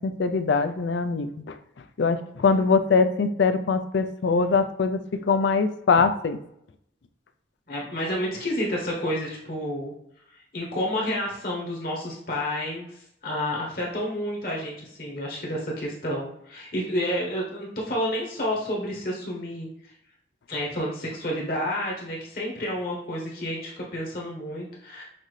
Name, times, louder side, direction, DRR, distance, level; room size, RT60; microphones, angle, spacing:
voice 1, 0.0-1.6 2.0-5.0 5.3-6.4, left 4 dB, 75° left, 10 dB, 0.4 m, -22 dB
voice 2, 7.7-9.9 10.5-19.9 20.5-25.0, equal, 50° left, -2 dB, 1.0 m, -30 dB
5.9 x 2.6 x 3.2 m, 0.76 s
head